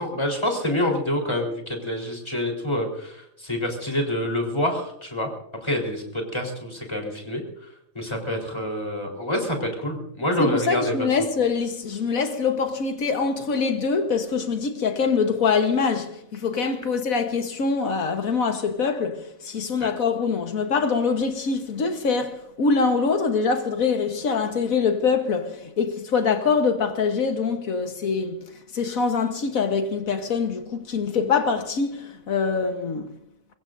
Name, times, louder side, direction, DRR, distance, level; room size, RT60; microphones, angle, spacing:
voice 1, 0.0-5.3 5.6-7.4 7.9-10.9 19.8-19.9, left 1 dB, 20° left, 4.1 m, -27 dB
voice 2, 10.4-28.4 28.7-33.1, left 5 dB, 85° left, 1.7 m, -24 dB
24.0 x 22.0 x 2.6 m
omnidirectional pair, 1.4 m